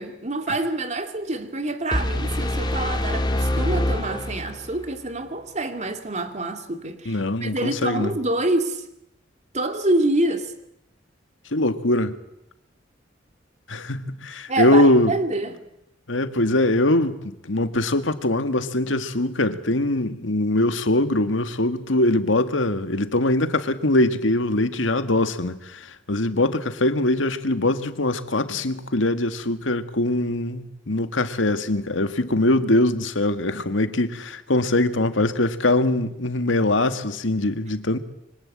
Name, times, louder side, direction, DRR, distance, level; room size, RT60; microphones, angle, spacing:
voice 1, 0.0-8.9 9.5-10.5 14.5-15.6, right 2 dB, 40° right, 2.5 m, -26 dB
sound 1, 1.9-4.9, left 1 dB, 25° left, 2.5 m, -25 dB
voice 2, 7.1-8.1 11.5-12.2 13.7-15.1 16.1-38.0, left 1 dB, 85° left, 1.8 m, -22 dB
26.0 x 24.5 x 8.6 m
head